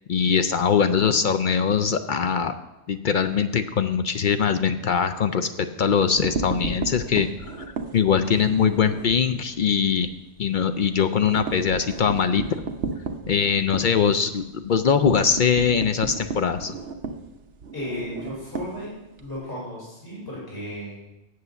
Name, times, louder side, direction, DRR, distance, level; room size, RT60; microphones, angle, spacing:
voice 1, 0.1-2.5 2.9-7.7 7.9-10.1 10.4-12.6 13.3-16.8, left 6 dB, 60° left, 9 dB, 0.5 m, -22 dB
sound 1, 6.0-9.2 9.6-9.8 10.1-10.2 10.5-19.4, right 4 dB, 65° right, 1.1 m, -34 dB
voice 2, 17.7-18.9 19.2-21.0, left 1 dB, 15° left, -7 dB, 4.6 m, -34 dB
8.5 x 7.9 x 6.9 m, 0.98 s
omnidirectional pair, 1.3 m